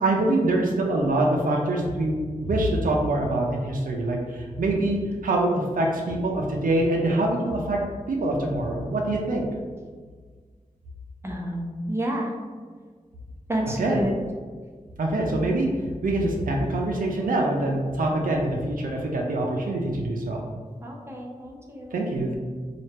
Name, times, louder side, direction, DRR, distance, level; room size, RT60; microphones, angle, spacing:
voice 1, 0.0-7.8 8.1-9.5 13.8-14.0 15.0-15.7 16.0-20.4 21.9-22.4, right 2 dB, 85° right, 0 dB, 0.5 m, -24 dB
voice 2, 11.2-12.3 13.5-14.1 20.8-21.9, right 1 dB, 20° right, -1 dB, 0.8 m, -30 dB
3.2 x 2.4 x 4.2 m, 1.6 s
cardioid pair, 50°, 14 cm